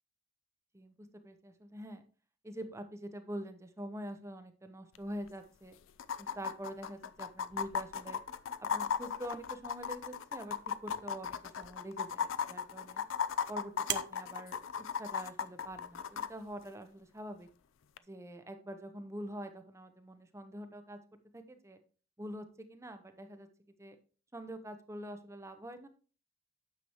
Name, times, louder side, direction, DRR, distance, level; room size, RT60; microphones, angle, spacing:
voice 1, 1.2-2.0 2.4-5.8 6.2-8.2 8.6-10.6 10.8-13.0 13.5-14.6 15.0-17.5 18.1-21.0 21.3-21.8 22.2-23.5 23.8-24.0 24.3-25.9, equal, 15° right, 8 dB, 0.7 m, -45 dB
sound 1, 4.9-5.0 5.3-5.4 6.0-16.3 18.0-18.1, left 7 dB, 80° left, 0.5 m, -36 dB
sound 2, 11.6-16.6, right 10 dB, 55° right, 0.7 m, -46 dB
9.4 x 6.9 x 3.0 m, 0.37 s
head